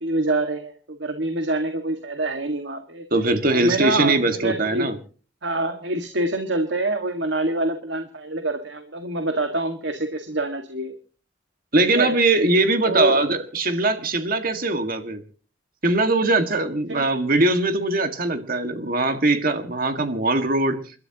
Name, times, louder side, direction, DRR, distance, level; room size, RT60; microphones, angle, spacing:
voice 1, 0.0-3.0 3.5-4.9 5.4-10.9 11.8-12.1 12.9-13.2 16.9-17.1, right 2 dB, 70° right, 5 dB, 1.9 m, -26 dB
voice 2, 3.1-5.0 11.7-15.2 15.8-20.8, right 2 dB, 50° right, 7 dB, 1.9 m, -21 dB
30.0 x 13.0 x 3.0 m, 0.39 s
head